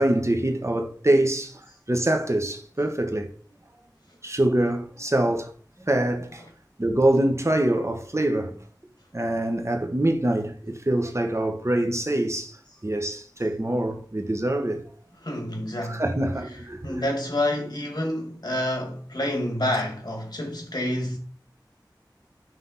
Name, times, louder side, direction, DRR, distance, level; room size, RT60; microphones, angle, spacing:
voice 1, 0.0-1.6 1.9-3.3 4.2-5.5 5.9-6.4 6.8-8.6 9.1-12.6 12.8-14.8 15.9-17.0, right 1 dB, 40° right, 1.1 m, -24 dB
voice 2, 15.2-16.0 16.8-21.2, left 1 dB, 60° left, 1.9 m, -28 dB
5.9 x 3.5 x 5.6 m
wide cardioid pair, 45°, 8 cm